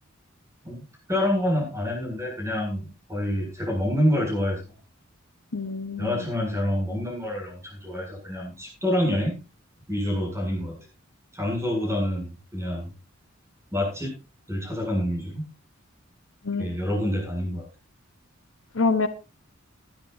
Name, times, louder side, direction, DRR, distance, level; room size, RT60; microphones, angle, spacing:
voice 1, 0.6-4.6 6.0-9.4 9.9-10.8 11.3-12.9 13.7-14.1 14.5-15.4 16.6-17.6, left 1 dB, 15° right, 0 dB, 7.7 m, -27 dB
voice 2, 5.5-6.2 16.4-16.7 18.7-19.1, left 4 dB, 70° left, 9 dB, 1.1 m, -26 dB
19.5 x 10.5 x 2.7 m, 0.29 s
head